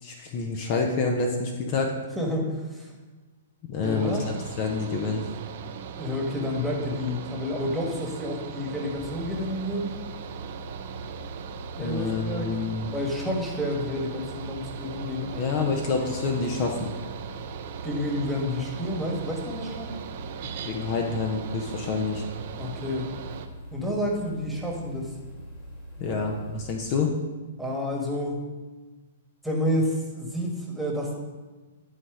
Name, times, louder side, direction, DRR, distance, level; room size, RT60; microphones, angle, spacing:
voice 1, 0.0-2.0 3.7-5.3 11.8-12.9 15.3-16.9 20.6-22.2 26.0-27.1, left 4 dB, 40° left, 2 dB, 1.0 m, -28 dB
voice 2, 2.1-2.9 3.8-4.3 6.0-10.0 11.8-12.5 12.9-15.4 16.0-16.3 17.8-19.9 22.6-23.1 23.7-25.1 26.1-26.2 27.6-28.4 29.4-31.1, left 1 dB, ahead, -2 dB, 1.7 m, -30 dB
Mechanical fan, 3.8-23.5, right 7 dB, 55° right, 0.6 m, -39 dB
sound 1, 9.0-26.6, equal, 20° left, 2.3 m, -43 dB
11.0 x 4.2 x 5.0 m, 1.3 s
hypercardioid pair, 115°, 0 cm